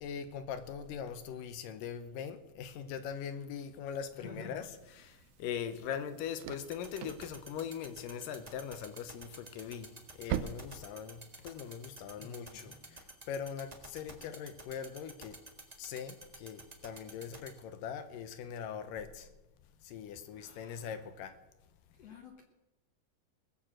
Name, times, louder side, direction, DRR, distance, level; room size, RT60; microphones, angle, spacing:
voice 1, 0.0-9.9 10.2-15.4 15.8-19.3 19.8-21.3, left 8 dB, 80° left, 2.5 m, -41 dB
voice 2, 4.1-4.6 12.2-13.0 20.3-21.1 21.9-22.4, left 3 dB, 60° left, 1.9 m, -51 dB
sound 1, 4.8-11.9, right 11 dB, 80° right, 2.0 m, -45 dB
sound 2, 6.6-17.5, right 3 dB, 30° right, 0.7 m, -49 dB
20.0 x 7.1 x 7.5 m
omnidirectional pair, 4.0 m